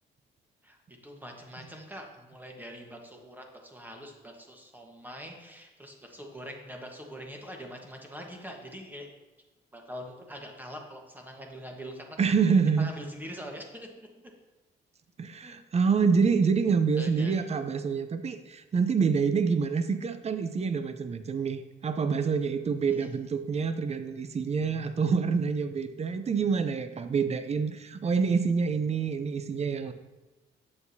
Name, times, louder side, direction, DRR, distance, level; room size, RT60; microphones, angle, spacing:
voice 1, 0.6-9.1 9.7-12.2 12.8-14.1 15.4-15.6 17.0-17.3 22.9-23.1, equal, 10° right, 1 dB, 1.2 m, -43 dB
voice 2, 12.2-12.9 15.2-29.9, right 5 dB, 35° right, 10 dB, 0.6 m, -27 dB
8.6 x 6.9 x 2.7 m, 1.1 s
cardioid pair, 90°, 20 cm